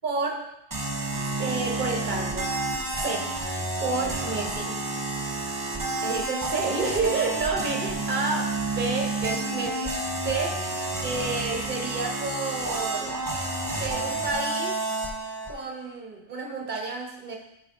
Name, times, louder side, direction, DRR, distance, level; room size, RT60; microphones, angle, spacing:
voice 1, 0.0-0.5 1.4-2.5 2.9-3.4 3.8-4.8 6.0-9.9 10.2-10.6 11.0-13.2 13.8-14.8 15.5-17.4, right 3 dB, 45° right, 1 dB, 1.3 m, -30 dB
sound 1, 0.7-15.5, right 2 dB, 20° right, 0.8 m, -30 dB
9.1 x 3.7 x 3.8 m, 0.81 s
omnidirectional pair, 1.2 m